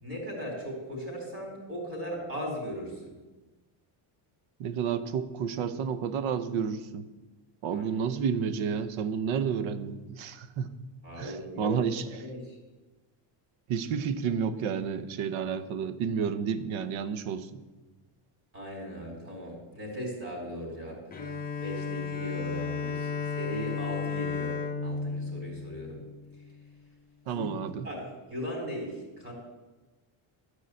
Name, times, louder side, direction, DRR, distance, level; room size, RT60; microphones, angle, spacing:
voice 1, 0.0-3.1 7.7-7.8 11.0-11.7 12.2-12.5 18.5-21.0 21.6-24.5 24.8-26.0 27.2-27.5 27.8-29.3, equal, 25° right, 0 dB, 4.1 m, -38 dB
voice 2, 4.6-7.0 7.6-10.7 11.2-12.0 13.7-17.5 27.3-27.9, right 7 dB, 70° right, 13 dB, 0.9 m, -30 dB
Bowed string instrument, 21.1-26.6, left 5 dB, 20° left, 1.1 m, -34 dB
12.5 x 4.9 x 8.4 m, 1.2 s
cardioid pair, 160°, 50 cm